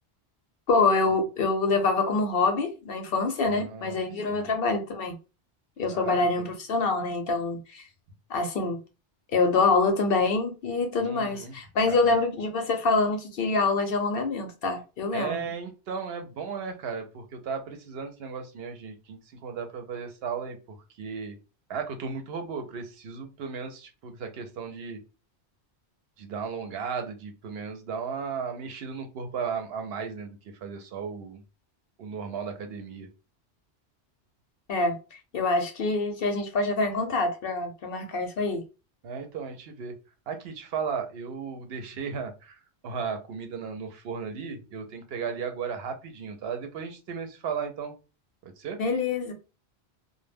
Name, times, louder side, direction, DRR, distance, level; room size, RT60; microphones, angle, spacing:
voice 1, 0.7-5.1 5.8-7.9 8.3-8.8 9.3-15.4 34.7-38.6 48.8-49.3, left 3 dB, 60° left, 0.7 m, -26 dB
voice 2, 3.5-4.0 4.3-4.5 5.9-6.2 11.0-11.6 11.8-12.1 15.1-21.3 21.7-25.0 26.2-31.4 32.0-33.1 39.0-39.9 40.3-47.9 48.4-48.8, right 6 dB, 70° right, 0.8 m, -35 dB
2.1 x 2.1 x 3.3 m
omnidirectional pair, 1.1 m